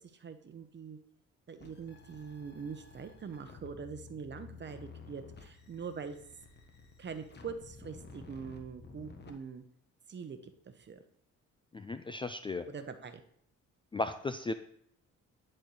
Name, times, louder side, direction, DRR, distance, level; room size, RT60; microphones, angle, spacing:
voice 1, 0.2-1.0 1.5-6.2 7.0-9.6 10.1-11.0 12.7-13.2, right 6 dB, 35° right, 8 dB, 0.9 m, -43 dB
sound 1, 1.6-9.3, left 4 dB, 35° left, 1.1 m, -52 dB
voice 2, 11.7-12.7 13.9-14.5, left 2 dB, 20° left, 9 dB, 0.3 m, -35 dB
10.5 x 4.4 x 3.2 m, 0.69 s
cardioid pair, 90°, 30 cm